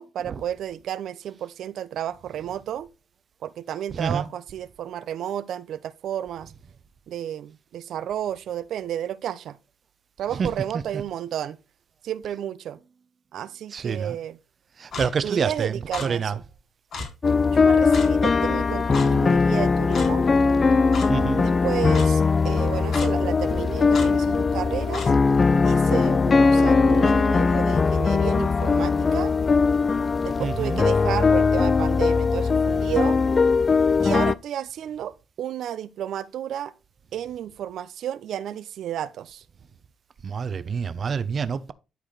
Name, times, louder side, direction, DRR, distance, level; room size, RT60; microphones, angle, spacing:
voice 1, 0.0-2.9 3.4-6.5 7.1-9.6 10.2-11.6 12.0-12.8 13.3-14.4 15.2-16.4 17.5-20.3 21.4-25.1 25.6-29.3 30.2-33.2 34.0-36.7 37.1-39.4, right 10 dB, 75° right, 0.7 m, -32 dB
voice 2, 3.9-4.3 10.3-10.8 13.7-14.2 14.8-16.4 21.0-21.5 30.4-30.8 40.2-41.7, right 6 dB, 45° right, 0.9 m, -28 dB
Clock, 14.9-15.1 15.9-16.1 16.9-17.1 17.9-18.1 18.9-19.1 19.9-20.1 20.9-21.1 21.9-22.1 22.9-23.1 23.9-24.1 24.9-25.1, left 4 dB, 65° left, 3.5 m, -32 dB
sound 1, 17.2-34.3, left 4 dB, 35° left, 0.5 m, -20 dB
12.0 x 4.9 x 4.0 m
cardioid pair, 90°, 0 cm